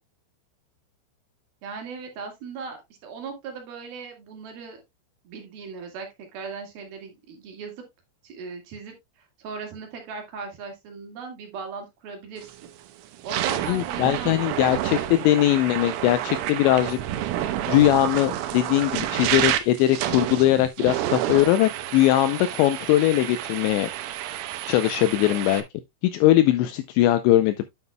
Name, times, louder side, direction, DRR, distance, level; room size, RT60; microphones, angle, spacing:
voice 1, 1.6-4.8 5.2-7.7 8.2-8.9 9.4-12.6 13.2-15.3 25.3-25.5, right 5 dB, 60° right, 3.3 m, -38 dB
sound 1, 12.4-12.7 13.1-25.6, right 12 dB, 90° right, 3.3 m, -29 dB
voice 2, 13.7-17.0 17.7-23.9 24.7-25.6 26.1-27.6, left 14 dB, 85° left, 2.6 m, -20 dB
9.7 x 7.2 x 2.2 m
omnidirectional pair, 5.5 m